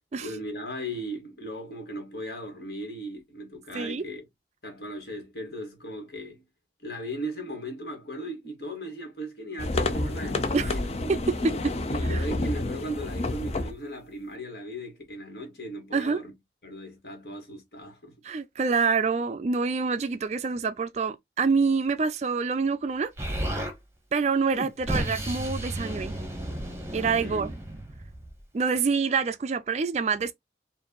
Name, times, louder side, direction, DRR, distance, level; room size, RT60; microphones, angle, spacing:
voice 1, 0.2-4.3 4.6-6.4 6.8-11.1 11.9-16.3 16.6-18.2 27.2-27.5, right 1 dB, 60° left, 1.9 m, -37 dB
sound 1, 9.6-13.7, left 2 dB, 35° left, 0.5 m, -29 dB
voice 2, 11.1-11.5 12.1-12.2 15.9-16.2 18.2-23.1 24.1-26.2 26.9-27.5 28.5-30.3, right 5 dB, 40° right, 0.3 m, -26 dB
Explosion, 23.2-23.7 24.5-28.4, right 1 dB, 15° right, 0.9 m, -33 dB
4.5 x 2.6 x 2.8 m
head